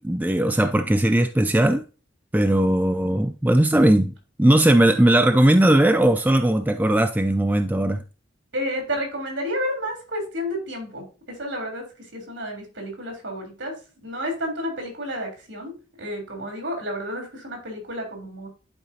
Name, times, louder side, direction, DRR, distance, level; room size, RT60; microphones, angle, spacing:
voice 1, 0.0-1.8 2.3-4.1 4.4-8.0, right 1 dB, 10° right, 0.3 m, -18 dB
voice 2, 8.5-13.7 14.0-18.5, equal, 70° right, 3.6 m, -31 dB
11.0 x 4.7 x 2.8 m
head